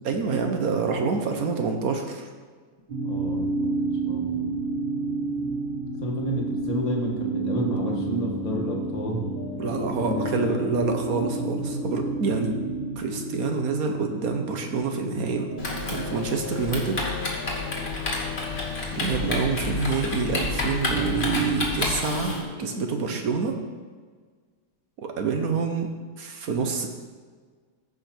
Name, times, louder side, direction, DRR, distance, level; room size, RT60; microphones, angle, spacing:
voice 1, 0.0-2.3 9.6-12.5 13.0-15.5 15.9-17.0 17.5-17.8 18.9-23.5 25.0-25.9 26.2-26.9, right 5 dB, 60° right, 4 dB, 1.4 m, -27 dB
sound 1, 2.9-12.9, right 4 dB, 35° right, 1.1 m, -30 dB
voice 2, 3.0-3.8 4.0-4.4 6.0-9.3 10.0-10.7, equal, 25° left, -1 dB, 1.4 m, -30 dB
sound 2, 7.3-23.4, left 3 dB, 65° left, 1.5 m, -37 dB
Typing, 15.6-22.4, left 3 dB, 40° left, 1.7 m, -30 dB
15.0 x 5.1 x 4.5 m, 1.5 s
omnidirectional pair, 1.8 m